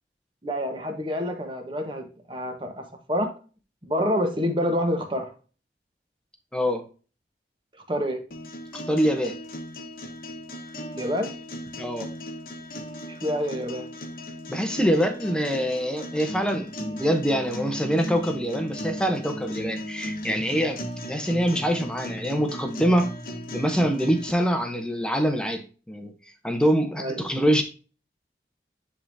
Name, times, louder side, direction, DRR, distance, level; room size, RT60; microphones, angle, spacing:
voice 1, 0.4-3.3 3.8-5.3 7.9-8.2 10.9-11.3 13.1-13.8 27.0-27.3, equal, 30° right, 4 dB, 1.2 m, -27 dB
voice 2, 6.5-6.8 8.7-9.4 11.8-12.1 14.5-23.2 23.5-26.1 26.4-27.6, equal, 5° left, 6 dB, 0.8 m, -25 dB
sound 1, 8.3-24.3, left 1 dB, 55° left, 1.1 m, -37 dB
10.0 x 3.7 x 2.7 m, 0.36 s
head